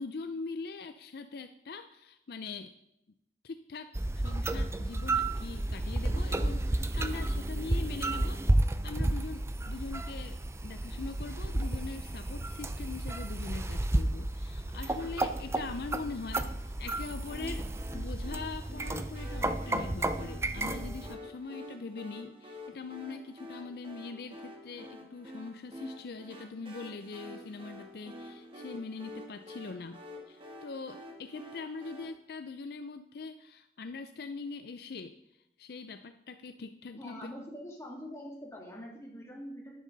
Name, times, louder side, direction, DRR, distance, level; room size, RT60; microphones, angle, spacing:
voice 1, 0.0-2.7 3.4-8.4 8.8-37.2, left 4 dB, 60° left, 9 dB, 0.5 m, -42 dB
sound 1, 3.9-21.1, right 1 dB, 15° right, 0.4 m, -32 dB
sound 2, 17.3-32.1, equal, 30° right, 1.7 m, -48 dB
voice 2, 37.0-39.8, equal, 15° left, -3 dB, 2.7 m, -44 dB
10.5 x 10.5 x 4.0 m, 0.81 s
head